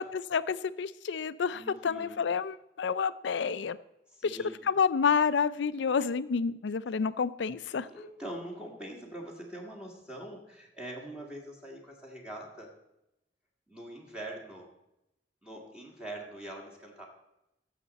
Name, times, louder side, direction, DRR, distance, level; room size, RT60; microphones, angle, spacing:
voice 1, 0.0-3.8 4.2-7.9, left 6 dB, 75° left, 16 dB, 0.4 m, -29 dB
voice 2, 1.5-2.2 4.2-4.6 6.9-7.0 7.8-12.7 13.7-14.7 15.4-17.1, right 1 dB, 5° right, -2 dB, 1.7 m, -43 dB
15.0 x 6.7 x 4.1 m, 0.89 s
head